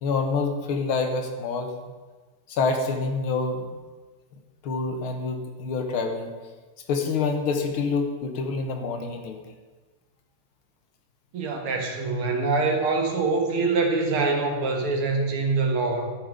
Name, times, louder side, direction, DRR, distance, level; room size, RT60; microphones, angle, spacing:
voice 1, 0.0-1.7 2.5-3.7 4.6-6.3 6.9-9.5, left 4 dB, 70° left, 5 dB, 1.9 m, -27 dB
voice 2, 11.3-16.1, right 3 dB, 75° right, 2 dB, 2.3 m, -24 dB
13.0 x 6.2 x 5.0 m, 1.3 s
omnidirectional pair, 2.4 m